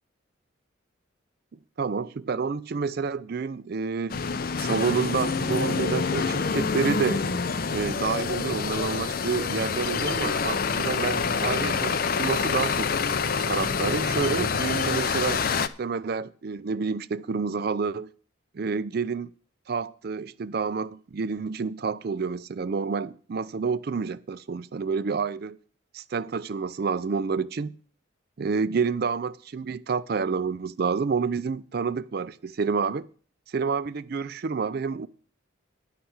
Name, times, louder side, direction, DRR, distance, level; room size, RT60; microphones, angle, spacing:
voice 1, 1.8-4.2 4.6-7.2 7.7-12.9 13.4-18.1 18.5-19.3 19.7-25.6 25.9-27.8 28.4-33.1 33.5-35.1, right 5 dB, 50° right, 0.4 m, -29 dB
sound 1, 4.1-15.7, left 5 dB, 45° left, 0.5 m, -27 dB
10.0 x 5.8 x 7.9 m
head